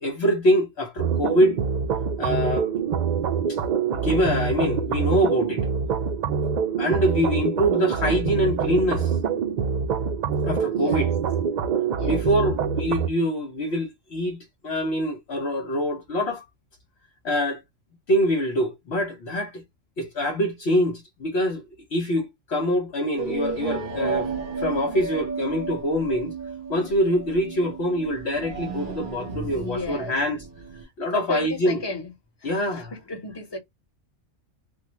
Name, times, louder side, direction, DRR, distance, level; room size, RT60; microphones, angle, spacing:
voice 1, 0.0-1.6 2.2-2.7 3.5-3.6 3.9-5.7 6.8-9.1 10.5-11.1 12.0-14.4 14.6-16.4 17.2-17.6 18.1-19.6 20.0-21.6 21.9-24.3 24.6-26.3 26.7-30.4 31.0-31.8 32.4-32.9, equal, 60° left, 1.0 m, -24 dB
sound 1, 1.0-13.1, right 6 dB, 70° right, 0.4 m, -25 dB
voice 2, 10.7-11.1 12.0-12.2 29.5-30.2 31.1-32.1 32.4-33.6, left 2 dB, 20° left, 1.1 m, -33 dB
sound 2, 23.2-30.8, right 5 dB, 50° right, 0.8 m, -33 dB
3.6 x 2.2 x 3.0 m
omnidirectional pair, 1.3 m